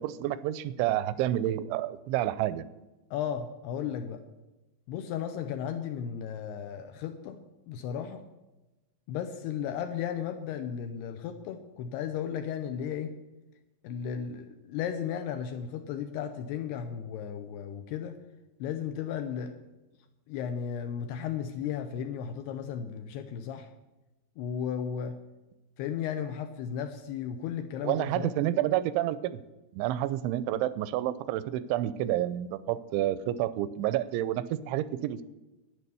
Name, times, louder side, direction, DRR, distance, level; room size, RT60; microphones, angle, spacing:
voice 1, 0.0-2.6 27.8-29.4 29.7-35.2, right 13 dB, 85° right, 16 dB, 2.9 m, -29 dB
voice 2, 3.1-4.2 4.9-7.4 7.7-8.2 9.1-13.2 13.8-18.2 18.6-19.6 20.3-23.7 24.4-25.2 25.8-28.3, left 8 dB, 80° left, 7 dB, 2.5 m, -35 dB
11.0 x 9.7 x 6.9 m, 1.1 s
omnidirectional pair, 5.4 m